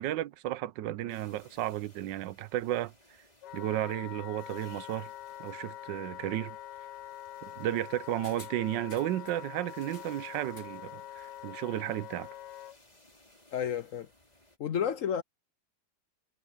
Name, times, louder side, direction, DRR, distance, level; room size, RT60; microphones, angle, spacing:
voice 1, 0.0-2.9 3.5-5.1 5.4-6.6 7.4-12.3, right 13 dB, 90° right, 1.3 m, -33 dB
sound 1, 1.1-14.6, left 1 dB, 20° left, 4.3 m, -62 dB
Wind instrument woodwind instrument, 3.4-12.8, left 12 dB, 80° left, 1.4 m, -45 dB
sound 2, 8.2-9.4 9.8-10.8 11.1-11.2, left 1 dB, 40° left, 7.8 m, -53 dB
voice 2, 13.5-14.1 14.6-15.2, left 8 dB, 65° left, 0.9 m, -31 dB
omnidirectional pair, 1.9 m